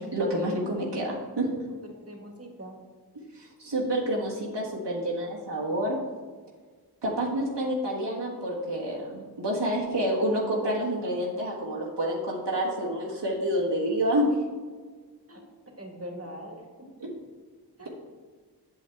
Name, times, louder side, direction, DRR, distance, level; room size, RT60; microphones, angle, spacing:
voice 1, 0.0-1.5 3.3-6.0 7.0-14.3 17.0-17.1, equal, 90° right, -5 dB, 1.6 m, -28 dB
voice 2, 1.8-2.8 15.3-15.4 15.8-16.6 17.8-17.9, equal, 35° right, 2 dB, 1.7 m, -42 dB
8.2 x 7.1 x 3.5 m, 1.5 s
wide cardioid pair, 40°, 41 cm